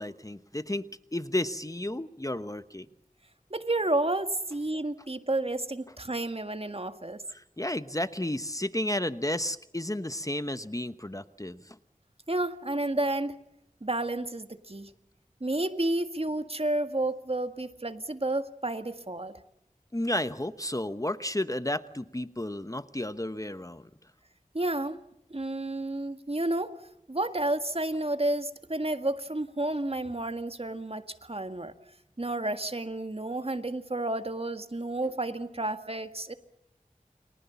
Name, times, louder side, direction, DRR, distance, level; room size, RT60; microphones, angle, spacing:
voice 1, 0.0-2.9 7.3-11.8 19.9-23.9, left 1 dB, 25° left, 12 dB, 1.0 m, -32 dB
voice 2, 3.5-7.2 12.3-13.4 13.8-14.9 15.4-19.4 24.5-25.0 25.3-26.8 27.1-31.7 32.2-36.3, right 2 dB, 45° right, 8 dB, 1.9 m, -31 dB
30.0 x 24.0 x 7.1 m, 0.82 s
wide cardioid pair, 45°, 14 cm